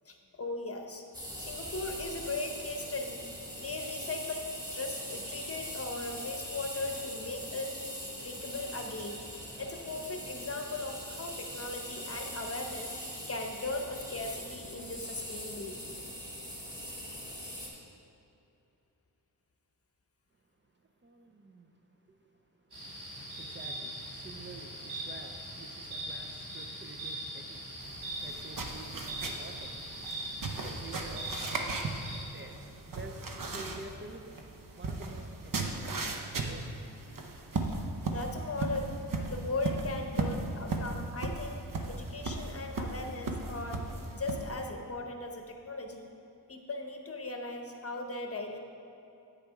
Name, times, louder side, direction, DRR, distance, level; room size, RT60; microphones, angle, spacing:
voice 1, 0.1-1.0 1.4-3.2 3.6-7.8 8.2-9.2 9.6-12.9 13.3-15.9 37.7-37.8 38.0-38.9 39.3-43.8 44.1-46.1 46.5-48.6, left 2 dB, 35° left, 3 dB, 0.8 m, -38 dB
sound 1, 1.1-17.7, equal, 10° right, 1.8 m, -42 dB
voice 2, 20.8-29.8 30.2-32.0 32.3-34.3 34.7-36.7, right 3 dB, 30° right, 3 dB, 0.5 m, -50 dB
sound 2, 22.7-32.2, right 1 dB, 75° right, 2.1 m, -41 dB
sound 3, 27.8-44.7, right 3 dB, 55° right, 0.8 m, -37 dB
8.4 x 6.6 x 4.6 m, 2.7 s
wide cardioid pair, 110°, 39 cm